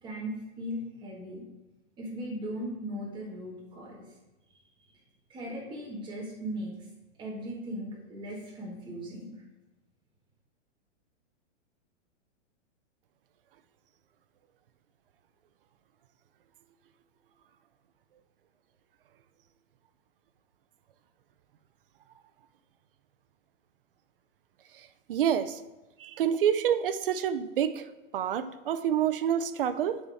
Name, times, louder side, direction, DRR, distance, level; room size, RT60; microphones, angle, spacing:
voice 1, 0.0-1.4 2.0-4.1 4.8-4.9 5.3-6.7 7.2-9.3, equal, 10° right, -4 dB, 1.6 m, -38 dB
voice 2, 24.7-25.6 26.0-30.0, right 9 dB, 50° right, 13 dB, 0.4 m, -28 dB
8.9 x 4.2 x 4.8 m, 1.1 s
hypercardioid pair, 165°, 37 cm